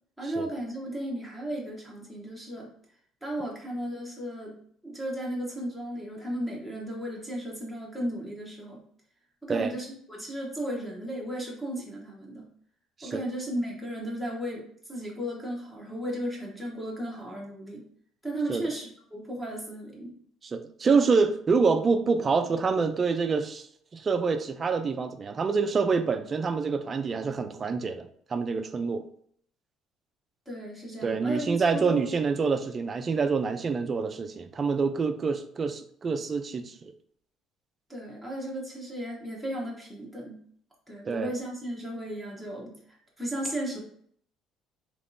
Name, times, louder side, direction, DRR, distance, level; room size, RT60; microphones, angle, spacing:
voice 1, 0.2-2.7 3.2-8.8 9.4-12.5 13.0-17.8 18.2-20.1 30.5-32.2 37.9-40.4 40.9-43.8, right 1 dB, 5° left, -3 dB, 0.8 m, -35 dB
voice 2, 20.4-23.7 23.9-29.1 31.0-36.9 41.0-41.3, right 5 dB, 30° right, 8 dB, 0.3 m, -26 dB
3.5 x 2.9 x 2.6 m, 0.63 s
cardioid pair, 125°, 0 cm